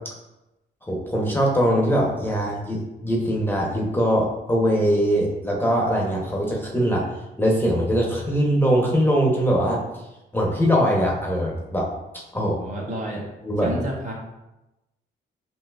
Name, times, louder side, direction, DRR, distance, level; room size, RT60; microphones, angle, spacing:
voice 1, 0.8-7.0 7.4-9.8 10.3-11.9 12.3-12.5 13.4-13.8, equal, 10° left, -3 dB, 0.9 m, -22 dB
voice 2, 12.3-13.3 13.6-14.1, equal, 40° right, -2 dB, 1.1 m, -31 dB
5.8 x 2.7 x 2.4 m, 0.96 s
cardioid pair, 90°, 20 cm